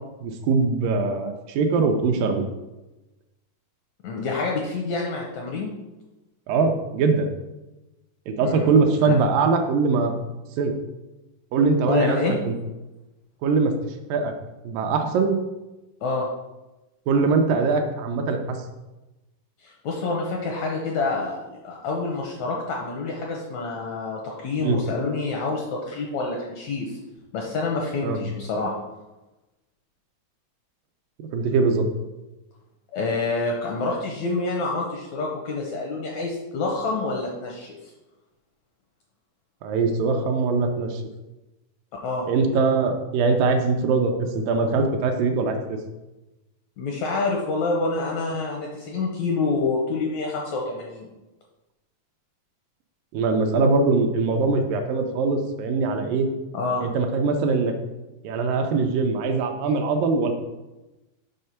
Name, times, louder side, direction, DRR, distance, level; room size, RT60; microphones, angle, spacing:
voice 1, 0.2-2.4 6.5-7.3 8.3-10.2 10.6-10.7 11.5-12.6 13.4-13.7 14.1-14.3 14.6-15.4 17.1-18.6 24.6-24.8 28.0-28.2 31.2-31.9 39.6-41.0 42.3-45.8 53.1-56.3 56.8-57.7 58.2-60.3, right 4 dB, 80° right, 4 dB, 2.2 m, -22 dB
voice 2, 4.0-5.7 8.4-8.7 9.1-9.2 11.9-12.3 16.0-16.3 19.6-21.4 21.6-27.0 27.3-28.8 32.9-37.9 42.0-42.3 46.8-51.1 56.5-56.8, left 3 dB, 75° left, -1 dB, 1.7 m, -27 dB
6.5 x 4.3 x 5.7 m, 1.0 s
omnidirectional pair, 4.1 m